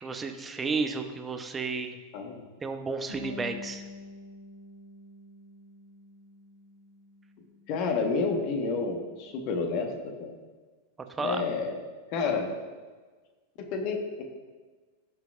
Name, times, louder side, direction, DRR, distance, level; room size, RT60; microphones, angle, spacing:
voice 1, 0.0-2.0 2.6-3.8 11.1-11.4, right 4 dB, 15° right, 6 dB, 0.9 m, -32 dB
Bass guitar, 3.1-9.3, left 5 dB, 85° left, 2.4 m, -47 dB
voice 2, 7.7-10.3 11.2-11.7 12.1-12.6 13.6-14.2, left 4 dB, 45° left, 3 dB, 1.3 m, -30 dB
17.0 x 6.2 x 2.5 m, 1.4 s
figure-of-eight pair, 90°, 0 cm